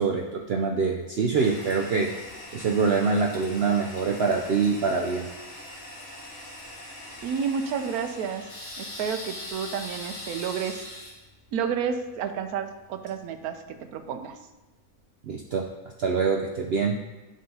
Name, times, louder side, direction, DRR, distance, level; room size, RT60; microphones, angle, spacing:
voice 1, 0.0-2.1 2.5-5.3 15.2-15.6 16.0-17.0, right 5 dB, 65° right, 1 dB, 0.6 m, -25 dB
Toilet flush, 1.4-14.0, left 1 dB, 55° left, 1.8 m, -42 dB
voice 2, 7.2-8.5 8.8-10.8 11.5-14.4, right 7 dB, 90° right, 8 dB, 1.1 m, -30 dB
11.0 x 4.0 x 2.8 m, 1.1 s
omnidirectional pair, 1.5 m